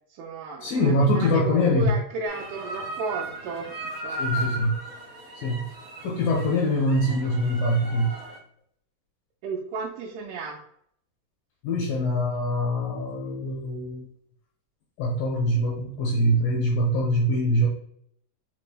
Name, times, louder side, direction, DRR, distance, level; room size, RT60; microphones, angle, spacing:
voice 1, 0.1-3.8 4.0-4.6 9.4-10.6, right 4 dB, 85° right, -2 dB, 2.6 m, -34 dB
voice 2, 0.6-1.9 4.2-4.8 5.4-5.7 6.0-8.1 11.6-14.1 15.0-17.7, equal, 75° left, -1 dB, 2.3 m, -23 dB
sound 1, 2.3-8.4, equal, 40° right, 1.5 m, -36 dB
5.9 x 3.2 x 2.2 m, 0.66 s
omnidirectional pair, 4.6 m